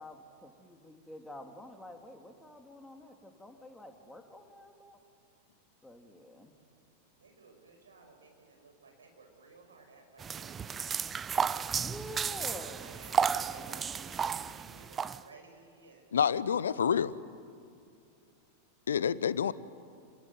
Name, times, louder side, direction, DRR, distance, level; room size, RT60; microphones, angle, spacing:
voice 1, 0.0-5.0 5.8-6.5 11.8-13.0, left 1 dB, 5° left, 5 dB, 2.5 m, -48 dB
voice 2, 7.2-11.0 11.2-11.9 12.3-16.2, right 3 dB, 70° right, 3 dB, 6.1 m, -56 dB
sound 1, 10.2-15.2, right 6 dB, 20° right, 0.6 m, -33 dB
voice 3, 16.1-17.1 18.9-19.5, left 7 dB, 65° left, 18 dB, 0.8 m, -28 dB
29.0 x 19.0 x 9.5 m, 2.4 s
figure-of-eight pair, 90°, 0 cm